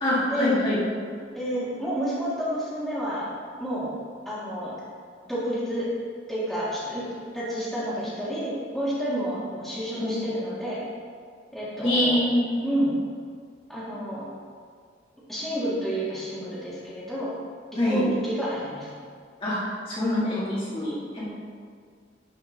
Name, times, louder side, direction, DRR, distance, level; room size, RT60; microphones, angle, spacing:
voice 1, 0.0-0.8 10.0-10.2 11.8-12.6 17.8-18.0 19.4-21.3, left 1 dB, 30° left, -9 dB, 1.7 m, -25 dB
voice 2, 1.3-3.3 3.6-3.9 4.3-4.7 5.2-5.9 6.3-7.1 7.3-10.8 11.5-12.2 12.6-12.9 13.7-14.2 15.3-17.3 17.9-18.9, equal, ahead, -10 dB, 1.8 m, -29 dB
11.0 x 4.8 x 3.3 m, 2.1 s
head